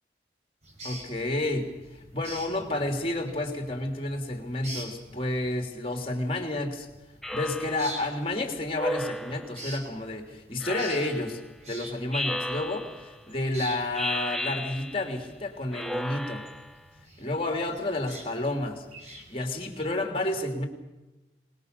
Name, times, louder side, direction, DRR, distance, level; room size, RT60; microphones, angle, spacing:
sound 1, 0.6-20.1, right 1 dB, 40° right, 5.3 m, -47 dB
voice 1, 0.8-1.7 2.1-6.9 7.3-16.4 17.2-18.9 19.3-20.7, left 1 dB, 30° left, 4 dB, 3.2 m, -30 dB
Speech synthesizer, 7.2-8.0 8.8-9.6 10.6-11.4 12.1-13.1 13.9-15.2 15.7-16.8, left 1 dB, ahead, 0.7 m, -34 dB
23.5 x 21.0 x 6.9 m, 1.1 s
head